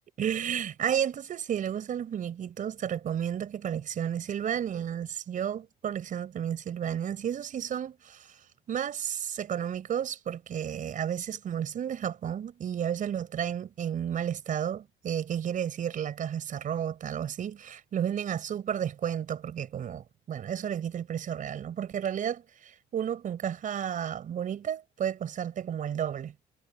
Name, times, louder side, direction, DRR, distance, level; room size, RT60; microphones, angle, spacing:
voice 1, 0.2-26.3, right 9 dB, 50° right, 5.4 m, -32 dB
cardioid pair, 110°, 17 cm